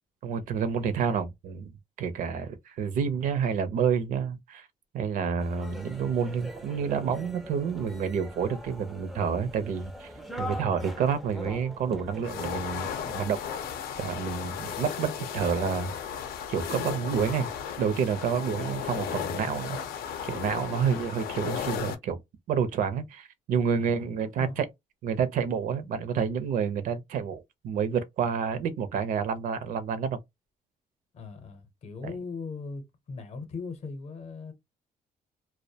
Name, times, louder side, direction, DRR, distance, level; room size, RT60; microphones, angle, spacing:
voice 1, 0.2-1.7 2.0-4.7 4.9-10.1 10.4-13.4 14.0-15.9 16.5-17.5 17.8-19.8 20.2-22.2 22.5-24.7 25.0-30.2, right 7 dB, 60° right, 0.5 m, -29 dB
sound 1, 5.4-13.7, equal, ahead, 0.3 m, -42 dB
sound 2, 12.2-21.9, left 8 dB, 90° left, 0.5 m, -35 dB
voice 2, 14.5-14.8 18.4-18.6 23.8-24.0 24.4-24.6 31.1-34.5, left 4 dB, 45° left, 0.6 m, -40 dB
2.3 x 2.1 x 2.6 m
cardioid pair, 170°, 15 cm